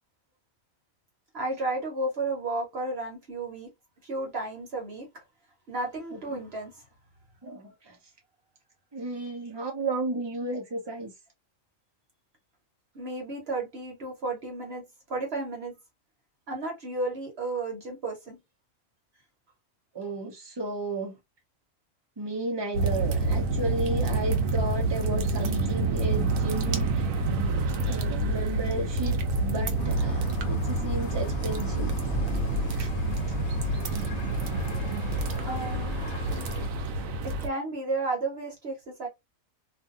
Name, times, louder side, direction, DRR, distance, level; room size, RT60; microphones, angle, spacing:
voice 1, 1.3-3.7 4.0-5.1 5.7-6.7 9.2-9.3 12.9-15.8 16.5-18.4 35.5-36.0 36.3-36.6 37.2-39.1, right 2 dB, 55° right, 1.2 m, -33 dB
voice 2, 7.4-8.0 8.9-11.1 19.9-21.1 22.2-31.9 32.8-32.9, right 2 dB, 25° right, 0.8 m, -33 dB
sound 1, 22.7-37.5, right 2 dB, 85° right, 1.0 m, -28 dB
sound 2, 29.8-36.7, equal, 65° left, 1.0 m, -36 dB
2.6 x 2.5 x 2.5 m
omnidirectional pair, 1.3 m